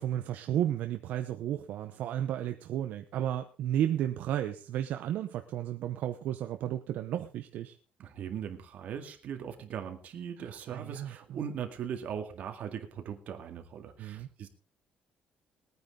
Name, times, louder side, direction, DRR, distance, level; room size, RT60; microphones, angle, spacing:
voice 1, 0.0-7.8 10.4-11.4 14.0-14.3, right 11 dB, 75° right, 7 dB, 0.8 m, -33 dB
voice 2, 8.0-14.5, right 8 dB, 55° right, 5 dB, 2.0 m, -39 dB
20.5 x 9.5 x 3.8 m, 0.36 s
cardioid pair, 160°, 3 cm